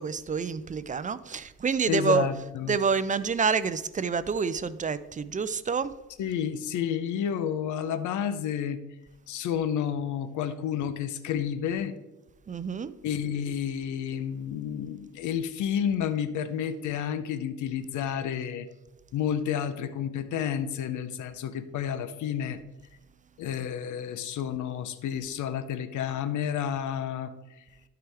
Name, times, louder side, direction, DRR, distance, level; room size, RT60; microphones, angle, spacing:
voice 1, 0.0-2.3 2.7-5.9 12.5-12.9, right 5 dB, 25° right, 15 dB, 0.4 m, -28 dB
voice 2, 1.9-2.8 6.2-8.8 9.3-11.9 13.0-18.7 19.1-22.6 23.4-27.3 27.6-27.7, left 8 dB, 80° left, 11 dB, 0.7 m, -30 dB
12.5 x 4.7 x 3.4 m, 1.0 s
cardioid pair, 90°, 30 cm